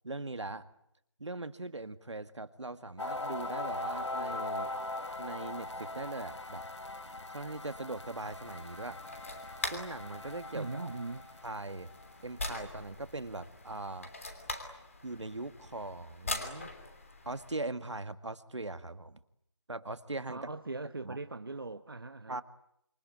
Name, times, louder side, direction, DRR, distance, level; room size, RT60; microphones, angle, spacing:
voice 1, 0.0-0.7 1.2-4.7 5.2-6.6 7.3-9.0 9.6-10.9 11.4-11.9 12.2-14.1 15.0-16.7 17.3-19.2 19.7-20.5 21.0-21.2 22.3-22.4, right 2 dB, 75° right, 11 dB, 2.0 m, -40 dB
sound 1, 3.0-12.9, left 2 dB, 75° left, 2.9 m, -40 dB
sound 2, 8.2-17.6, left 2 dB, 30° left, 3.0 m, -43 dB
voice 2, 10.5-11.3 20.3-22.4, right 3 dB, 50° right, 8 dB, 1.1 m, -40 dB
27.0 x 24.0 x 9.2 m, 0.75 s
figure-of-eight pair, 175°, 15 cm